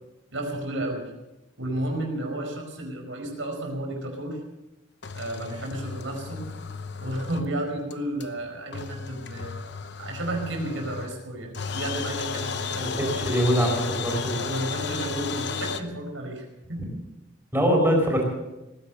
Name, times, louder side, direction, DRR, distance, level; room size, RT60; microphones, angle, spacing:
voice 1, 0.3-1.1 1.6-4.4 5.1-6.5 7.0-9.5 10.0-13.3 14.4-16.9, right 1 dB, 85° right, 2 dB, 5.1 m, -32 dB
sound 1, 5.0-7.6 7.9-8.0 8.2-8.3 8.7-11.3 11.5-15.8, left 5 dB, 60° left, 0.9 m, -33 dB
voice 2, 12.8-14.2 17.5-18.2, equal, 10° right, 0 dB, 4.8 m, -23 dB
19.0 x 10.5 x 6.5 m, 0.98 s
head